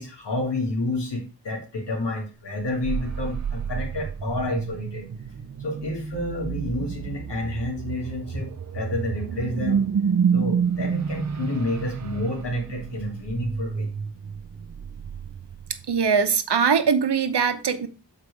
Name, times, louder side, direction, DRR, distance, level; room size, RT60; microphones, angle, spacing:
voice 1, 0.0-5.1 5.6-9.8 10.3-13.9, left 2 dB, 80° left, 2.3 m, -30 dB
sound 1, 2.6-16.1, right 6 dB, 45° right, 0.5 m, -29 dB
voice 2, 15.9-17.9, right 6 dB, 75° right, 0.9 m, -21 dB
6.8 x 4.8 x 4.7 m
wide cardioid pair, 85°, 41 cm